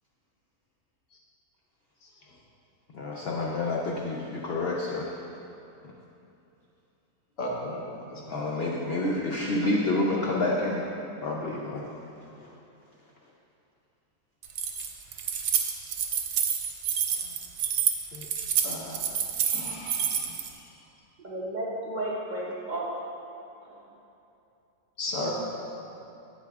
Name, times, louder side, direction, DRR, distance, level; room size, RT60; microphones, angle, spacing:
voice 1, 2.9-5.2 8.3-10.9 11.2-11.9 12.4-12.5 18.1-18.3, left 2 dB, 90° left, -2 dB, 0.5 m, -29 dB
voice 2, 7.4-7.8 8.1-8.3 18.6-18.9 19.4-20.3 25.0-25.3, left 1 dB, 55° left, -3 dB, 1.4 m, -34 dB
Keys jangling, 14.4-20.5, right 8 dB, 80° right, 1.1 m, -28 dB
voice 3, 21.2-22.9, right 1 dB, 50° right, -6 dB, 0.5 m, -32 dB
8.3 x 8.1 x 2.3 m, 2.9 s
omnidirectional pair, 1.8 m